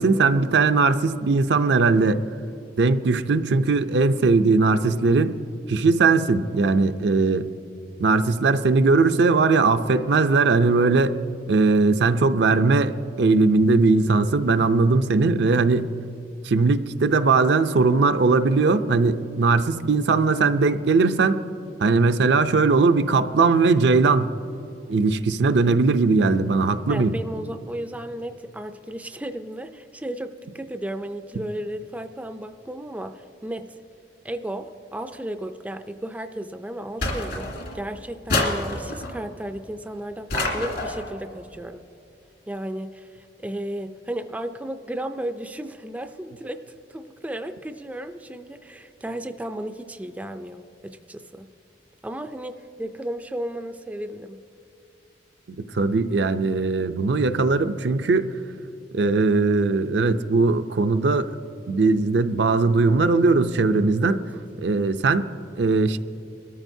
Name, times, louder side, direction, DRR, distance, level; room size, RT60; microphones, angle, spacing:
voice 1, 0.0-2.2 2.8-5.4 5.7-7.5 8.0-11.2 11.5-15.9 16.4-21.4 21.8-24.3 24.9-27.1 55.7-58.3 58.9-61.3 61.7-64.2 64.6-65.3 65.6-66.0, right 3 dB, 65° right, 9 dB, 0.5 m, -19 dB
voice 2, 26.9-33.8 34.2-41.9 42.5-51.5 52.0-54.4 64.0-64.4, right 1 dB, 10° right, 7 dB, 0.4 m, -34 dB
sound 1, 37.0-37.8 38.3-39.2 40.3-41.1, left 2 dB, 65° left, 2.3 m, -27 dB
22.0 x 13.5 x 2.7 m, 2.7 s
head